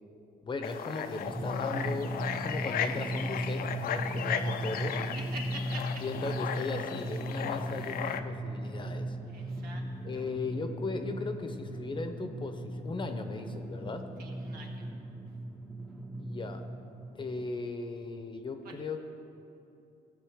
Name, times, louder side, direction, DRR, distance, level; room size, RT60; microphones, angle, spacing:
voice 1, 0.4-5.0 6.0-9.2 10.0-14.1 16.2-16.7 17.1-19.0, left 3 dB, 30° left, 7 dB, 0.9 m, -37 dB
sound 1, 0.6-8.2, left 8 dB, 60° left, 0.6 m, -36 dB
Drum, 1.3-17.4, right 1 dB, ahead, 0.8 m, -37 dB
voice 2, 5.3-6.0 9.3-9.9 10.1-10.3 14.2-14.7 18.6-18.7, right 3 dB, 65° right, 0 dB, 1.9 m, -45 dB
16.5 x 6.6 x 5.0 m, 2.9 s
cardioid pair, 110°, 17 cm